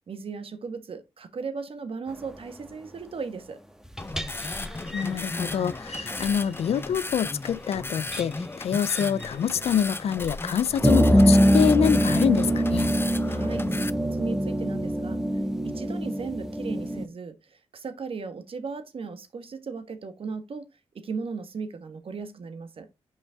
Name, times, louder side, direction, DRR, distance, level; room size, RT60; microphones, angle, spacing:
voice 1, 0.1-3.6 13.3-15.2 15.6-20.7 20.9-22.9, right 5 dB, 60° right, 1.4 m, -37 dB
sound 1, 3.8-6.4 7.5-7.6 8.1-8.2 8.9-9.3 10.2-10.4 10.6-17.1, equal, 5° right, 1.5 m, -24 dB
sound 2, 4.0-13.9, left 3 dB, 20° left, 0.6 m, -35 dB
voice 2, 4.9-12.9, left 8 dB, 75° left, 0.5 m, -26 dB
6.6 x 5.4 x 3.4 m
cardioid pair, 60°, 10 cm